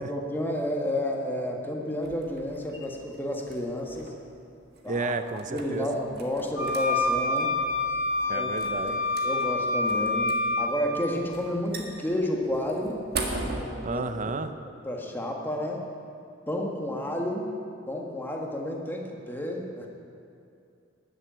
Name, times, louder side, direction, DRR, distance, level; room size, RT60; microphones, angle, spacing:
voice 1, 0.0-4.1 4.8-5.1 5.5-7.5 8.3-8.5 8.8-8.9 9.2-13.0 13.9-14.3 14.8-15.8 16.5-17.5 17.9-19.9, left 1 dB, 10° left, 0 dB, 1.6 m, -31 dB
sound 1, 2.0-13.6, right 3 dB, 55° right, 1.7 m, -41 dB
voice 2, 4.9-5.9 8.3-9.0 13.8-14.5, right 3 dB, 40° right, 10 dB, 0.7 m, -31 dB
sound 2, 6.6-10.7, left 2 dB, 75° left, 2.6 m, -27 dB
13.0 x 7.6 x 9.1 m, 2.6 s
head